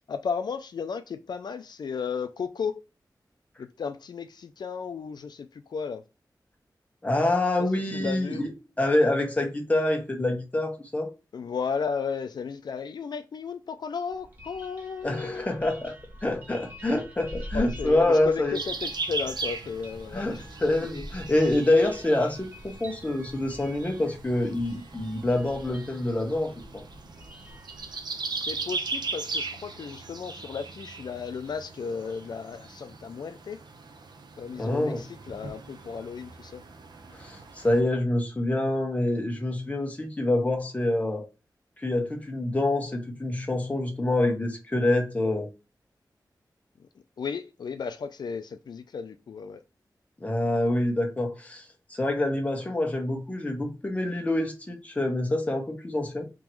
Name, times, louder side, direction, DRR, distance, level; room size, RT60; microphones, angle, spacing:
voice 1, 0.0-2.8 3.6-6.0 7.6-8.4 11.3-15.5 17.5-20.5 28.3-33.6 34.4-36.6 47.2-49.6, left 6 dB, 75° left, 0.4 m, -34 dB
voice 2, 7.0-8.5 8.8-11.1 15.0-15.9 16.2-18.6 20.1-26.8 34.5-35.0 37.1-41.3 41.8-45.5 50.2-56.3, left 1 dB, 20° left, 1.2 m, -26 dB
sound 1, 14.1-28.0, equal, 25° right, 1.4 m, -44 dB
sound 2, 18.5-37.8, right 3 dB, 75° right, 0.8 m, -39 dB
3.7 x 3.0 x 4.6 m
wide cardioid pair, 125°, 7 cm